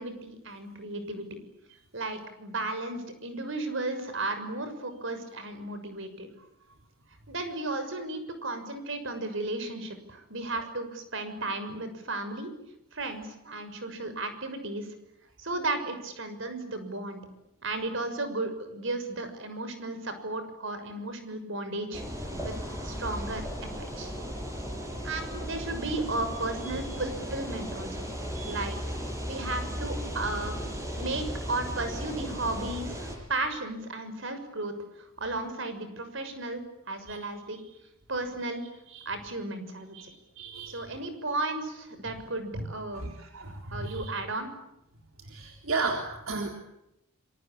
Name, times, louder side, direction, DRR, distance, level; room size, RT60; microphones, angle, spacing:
voice 1, 0.0-1.4 1.9-6.3 7.3-12.5 12.9-14.9 15.4-17.2 17.6-22.0 22.4-22.5 22.8-24.1 25.0-28.0 28.5-28.8 29.3-30.5 31.0-37.6 38.1-38.6 39.0-40.0 40.7-43.1 43.7-44.5, right 2 dB, 60° right, 9 dB, 6.5 m, -34 dB
sound 1, 21.9-33.2, equal, 15° right, 7.8 m, -36 dB
voice 2, 40.4-40.8 42.6-42.7 42.9-44.1 45.3-46.5, right 3 dB, 75° right, 3 dB, 3.8 m, -34 dB
27.5 x 24.5 x 8.8 m, 0.84 s
head